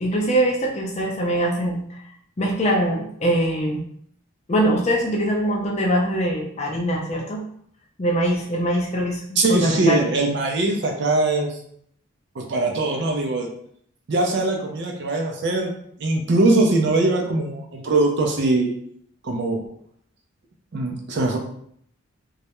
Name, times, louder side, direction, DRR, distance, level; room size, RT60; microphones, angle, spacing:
voice 1, 0.0-2.0 2.4-3.8 4.5-7.4 8.0-10.0, right 1 dB, 35° left, -2 dB, 0.5 m, -23 dB
voice 2, 9.4-11.6 12.4-13.5 14.1-15.7 16.0-18.7 19.2-19.7 20.7-21.4, right 2 dB, 55° right, 2 dB, 0.4 m, -21 dB
2.3 x 2.0 x 2.9 m, 0.65 s
head